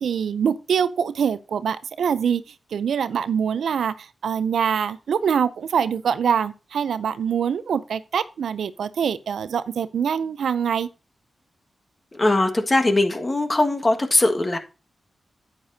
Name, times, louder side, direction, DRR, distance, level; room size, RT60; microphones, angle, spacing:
voice 1, 0.0-2.4 2.7-10.9, right 7 dB, 85° right, 0.5 m, -24 dB
voice 2, 12.1-14.6, left 2 dB, 30° left, 1.6 m, -20 dB
9.5 x 9.0 x 2.7 m
cardioid pair, 55°, 0 cm